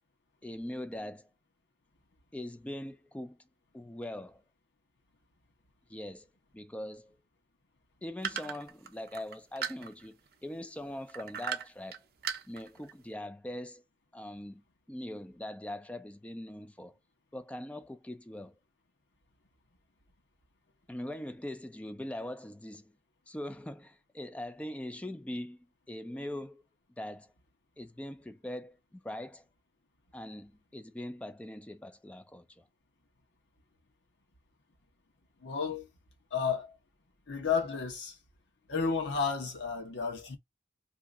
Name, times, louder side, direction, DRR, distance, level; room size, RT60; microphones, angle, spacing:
voice 1, 0.4-1.3 2.3-3.4 3.7-4.4 5.9-6.3 6.5-7.2 8.0-12.0 12.5-13.8 14.1-16.9 17.3-18.5 20.9-22.9 23.3-26.6 27.0-27.3 27.8-29.4 30.1-32.6, left 1 dB, 5° left, 0.3 m, -42 dB
sound 1, 8.2-10.3 11.1-12.0 12.2-12.9, right 7 dB, 55° right, 0.5 m, -36 dB
voice 2, 35.4-35.9 36.3-36.7 37.3-38.2 38.7-40.4, left 5 dB, 80° left, 1.0 m, -32 dB
2.7 x 2.4 x 3.6 m
head